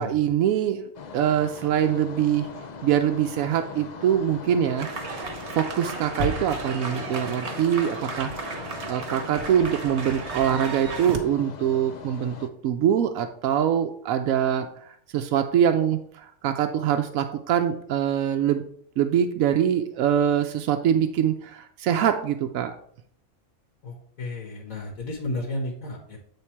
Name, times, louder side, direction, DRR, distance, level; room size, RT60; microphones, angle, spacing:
voice 1, 0.0-2.5 2.8-18.6 19.0-22.7, right 9 dB, 85° right, 6 dB, 1.0 m, -24 dB
sound 1, 0.9-12.5, left 5 dB, 55° left, 0.4 m, -40 dB
sound 2, 4.8-11.2, right 3 dB, 60° right, 1.3 m, -34 dB
voice 2, 23.8-26.2, left 2 dB, 90° left, 0 dB, 1.8 m, -33 dB
8.5 x 3.7 x 4.4 m, 0.62 s
omnidirectional pair, 1.4 m